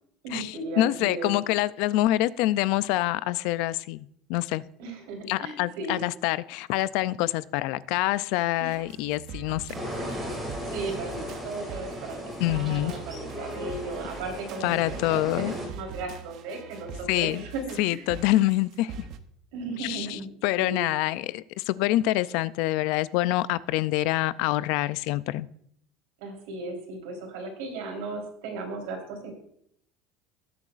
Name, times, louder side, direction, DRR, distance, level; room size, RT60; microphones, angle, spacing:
voice 1, 0.2-1.3 4.8-6.0 8.6-8.8 10.7-18.1 19.5-20.3 20.6-20.8 26.2-29.3, right 3 dB, 80° right, 2 dB, 3.7 m, -36 dB
voice 2, 0.8-4.6 5.3-9.8 12.4-12.9 14.6-15.5 17.1-17.4 17.8-19.1 19.8-20.1 20.4-25.5, left 16 dB, 60° left, 17 dB, 0.4 m, -26 dB
sound 1, 8.7-19.2, right 5 dB, 45° right, 0.7 m, -43 dB
sound 2, 9.7-15.7, equal, 10° right, 2.7 m, -36 dB
19.5 x 7.8 x 2.5 m, 0.68 s
cardioid pair, 180°, 0 cm